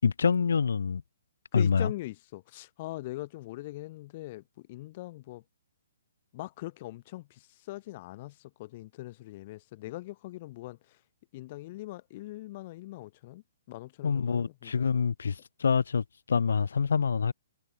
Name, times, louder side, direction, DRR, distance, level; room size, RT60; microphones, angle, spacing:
voice 1, 0.0-1.0 1.5-1.9 14.0-17.3, left 6 dB, 80° left, 7.2 m, -26 dB
voice 2, 1.5-5.4 6.3-11.0 11.3-13.4 13.7-14.8, left 18 dB, 30° left, 2.2 m, -41 dB
hypercardioid pair, 175°, 0 cm